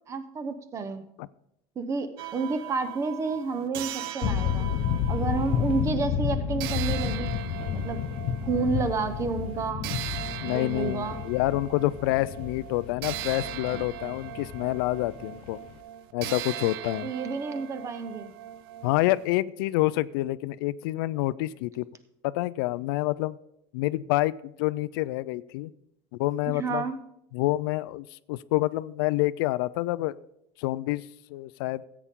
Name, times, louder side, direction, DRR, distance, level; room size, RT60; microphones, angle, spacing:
voice 1, 0.1-1.1 1.8-4.7 5.1-7.3 7.7-8.0 8.4-9.9 10.4-11.2 17.0-18.3 26.5-27.0, right 4 dB, 25° right, 11 dB, 0.8 m, -30 dB
sound 1, 2.2-5.9 6.6-19.3, right 12 dB, 85° right, 0.5 m, -39 dB
sound 2, 4.2-15.7, left 8 dB, 50° left, 0.8 m, -31 dB
voice 2, 10.4-15.6 16.1-17.1 18.8-21.9 22.2-23.4 23.7-25.7 26.2-26.9 27.3-30.2 30.6-31.0 31.3-31.8, left 18 dB, 80° left, 18 dB, 0.4 m, -27 dB
14.5 x 8.4 x 3.7 m, 0.80 s
supercardioid pair, 145°, 12 cm